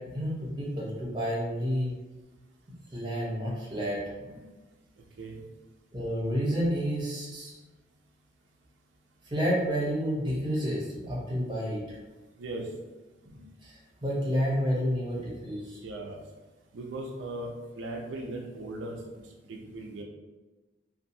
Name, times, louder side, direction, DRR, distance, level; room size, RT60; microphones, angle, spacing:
voice 1, 0.1-1.9 2.9-4.4 5.9-7.6 9.2-12.0 13.2-15.8, equal, 25° right, -5 dB, 0.8 m, -30 dB
voice 2, 12.4-12.7 15.8-16.2 16.7-17.5 17.8-20.0, right 2 dB, 85° right, 0 dB, 0.4 m, -38 dB
2.6 x 2.3 x 2.6 m, 1.2 s
head